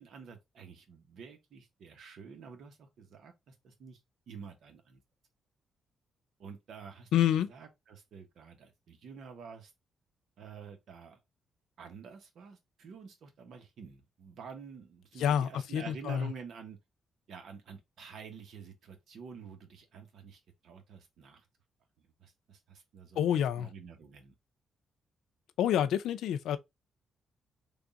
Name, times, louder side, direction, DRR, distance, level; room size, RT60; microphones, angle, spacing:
voice 1, 0.0-4.0 4.3-5.0 6.4-7.1 7.5-9.7 10.4-11.2 11.8-16.8 17.3-21.4 22.2-23.3 23.6-24.3, right 6 dB, 65° right, 1.1 m, -49 dB
voice 2, 7.1-7.5 15.2-16.3 23.2-23.7 25.6-26.6, left 10 dB, 90° left, 0.4 m, -28 dB
3.5 x 2.4 x 3.9 m
cardioid pair, 120°, 0 cm